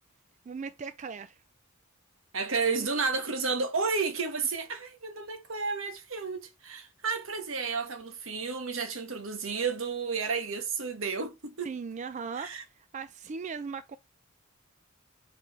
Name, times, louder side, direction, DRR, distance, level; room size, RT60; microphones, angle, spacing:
voice 1, 0.5-1.4 2.8-2.9 11.6-14.0, right 5 dB, 35° right, 0.3 m, -38 dB
voice 2, 2.3-11.7 12.4-12.6, right 4 dB, 75° right, 1.2 m, -32 dB
4.8 x 4.8 x 4.6 m
head